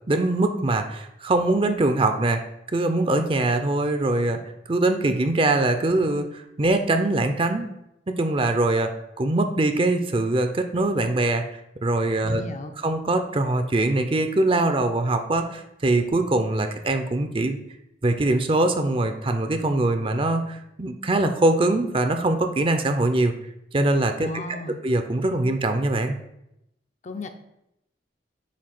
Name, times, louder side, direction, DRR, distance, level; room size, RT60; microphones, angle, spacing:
voice 1, 0.1-2.4 2.7-4.4 4.7-7.7 8.1-11.4 11.8-12.4 12.8-17.6 18.0-23.3 23.7-24.3 24.8-26.2, right 2 dB, 30° right, 7 dB, 0.6 m, -22 dB
voice 2, 12.2-12.7 24.2-24.8 27.0-27.3, left 2 dB, 40° left, 6 dB, 0.6 m, -35 dB
8.4 x 2.8 x 5.9 m, 0.83 s
head